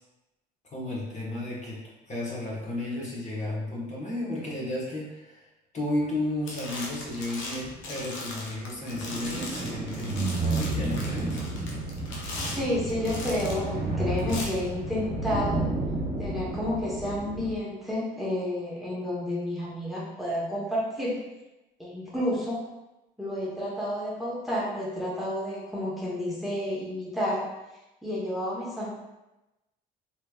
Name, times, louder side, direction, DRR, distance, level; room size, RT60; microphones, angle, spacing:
voice 1, 0.7-1.8 2.1-5.4 5.7-11.4, left 1 dB, 35° left, -6 dB, 1.3 m, -33 dB
sound 1, 6.0-6.2 6.5-13.7 14.2-14.4, left 2 dB, 70° left, 0.8 m, -39 dB
sound 2, 8.9-17.6, right 2 dB, 55° right, 0.9 m, -31 dB
voice 2, 12.5-15.6 16.2-21.2 21.8-22.6 23.2-27.4 28.0-28.9, left 1 dB, ahead, -7 dB, 1.1 m, -30 dB
3.3 x 3.0 x 2.4 m, 1.0 s
hypercardioid pair, 65°, 21 cm